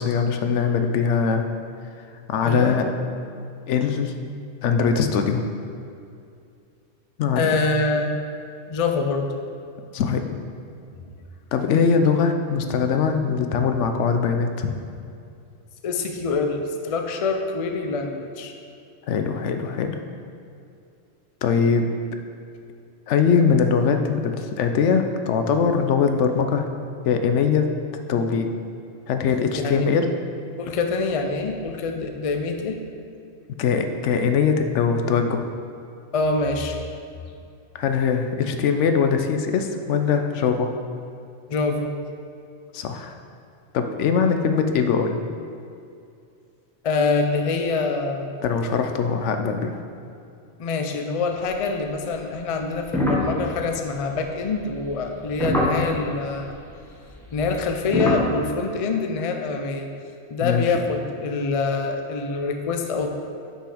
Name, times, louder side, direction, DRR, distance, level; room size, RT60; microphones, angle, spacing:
voice 1, 0.0-1.5 2.3-2.9 3.7-4.1 4.6-5.4 7.2-7.5 9.9-10.2 11.5-14.7 19.1-20.0 21.4-21.8 23.1-26.6 27.0-27.7 28.1-28.5 29.1-30.1 33.6-35.4 37.7-40.7 42.7-43.1 43.7-45.2 48.4-49.8 60.4-60.8, left 6 dB, 75° left, 6 dB, 0.9 m, -21 dB
voice 2, 2.4-2.8 7.4-8.1 8.7-9.3 11.0-11.1 15.8-18.5 29.6-29.9 30.6-32.8 36.1-36.8 41.5-41.9 46.8-48.3 50.6-56.5 57.3-59.9 60.3-63.2, left 4 dB, 45° left, 4 dB, 0.4 m, -25 dB
sound 1, 52.8-56.1 57.2-58.3, left 1 dB, ahead, 0.8 m, -24 dB
6.2 x 5.6 x 4.9 m, 2.5 s
omnidirectional pair, 1.2 m